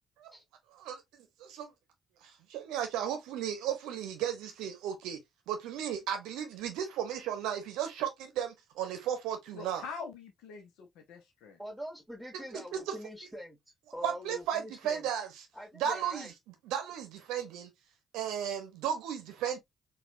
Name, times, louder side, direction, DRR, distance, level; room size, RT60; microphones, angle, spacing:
voice 1, 0.7-1.7 2.2-5.2 5.5-9.8 12.3-13.0 14.0-15.5 15.7-17.7 18.1-19.6, right 9 dB, 70° right, 0.8 m, -35 dB
voice 2, 9.5-11.6, left 5 dB, 70° left, 0.7 m, -44 dB
voice 3, 11.6-13.6 13.9-15.1 15.5-16.3, equal, 5° right, 1.6 m, -44 dB
4.2 x 2.4 x 2.4 m
figure-of-eight pair, 40°, 0 cm